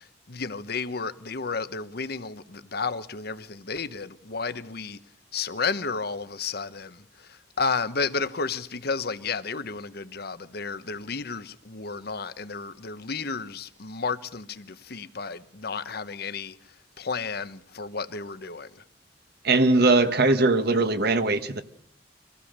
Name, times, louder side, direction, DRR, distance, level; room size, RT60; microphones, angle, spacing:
voice 1, 0.0-5.0 5.3-16.6 17.0-18.7, left 4 dB, 60° left, 1.1 m, -32 dB
voice 2, 19.4-21.6, right 3 dB, 60° right, 1.4 m, -20 dB
25.0 x 16.0 x 6.8 m
head